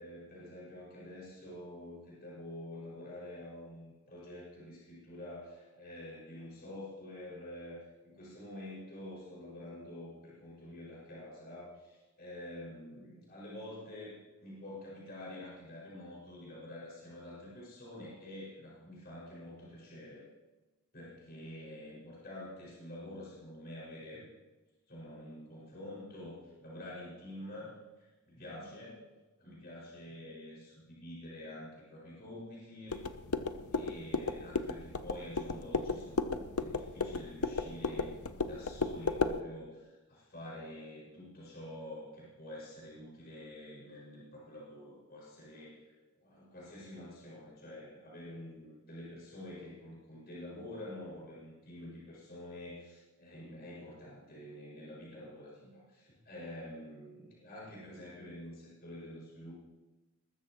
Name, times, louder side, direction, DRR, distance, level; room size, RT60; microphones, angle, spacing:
voice 1, 0.0-20.2 20.9-24.3 24.9-29.0 29.4-33.0 33.7-45.8 46.2-59.5, left 1 dB, 45° left, -7 dB, 5.8 m, -47 dB
sound 1, 32.9-39.4, left 4 dB, 85° left, 0.8 m, -34 dB
20.5 x 14.0 x 3.1 m, 1.1 s
head